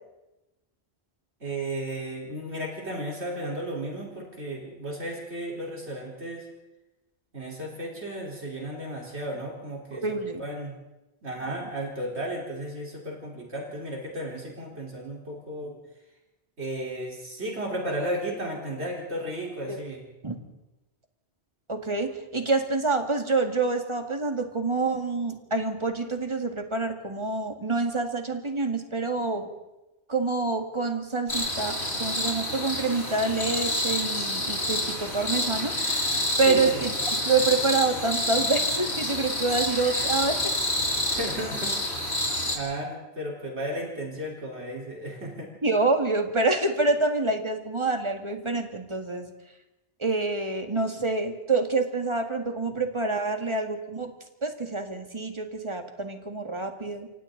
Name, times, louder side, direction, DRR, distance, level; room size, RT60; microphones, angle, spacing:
voice 1, 1.4-6.5 7.3-10.0 10.4-10.7 11.2-15.8 16.6-20.0 36.5-36.9 39.5-39.6 41.1-41.8 42.1-42.3 42.5-45.5, right 1 dB, 85° right, -2 dB, 4.5 m, -34 dB
voice 2, 9.9-10.4 19.7-19.8 20.2-20.4 21.7-29.5 30.1-35.8 36.4-36.9 37.3-40.5 45.6-49.3 50.0-54.1 54.4-57.1, right 3 dB, 25° right, 5 dB, 2.0 m, -27 dB
sound 1, 31.3-42.6, left 1 dB, 80° left, 4.3 m, -28 dB
28.5 x 25.5 x 4.0 m, 0.99 s
omnidirectional pair, 1.1 m